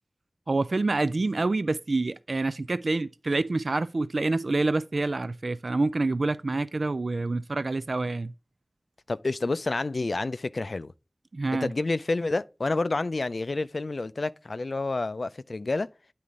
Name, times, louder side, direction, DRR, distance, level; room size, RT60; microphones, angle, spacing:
voice 1, 0.5-8.3 11.3-11.7, right 2 dB, 80° right, 0.3 m, -27 dB
voice 2, 9.1-10.9 11.6-15.9, left 3 dB, 80° left, 0.4 m, -29 dB
9.4 x 4.2 x 3.6 m
wide cardioid pair, 55°, 0 cm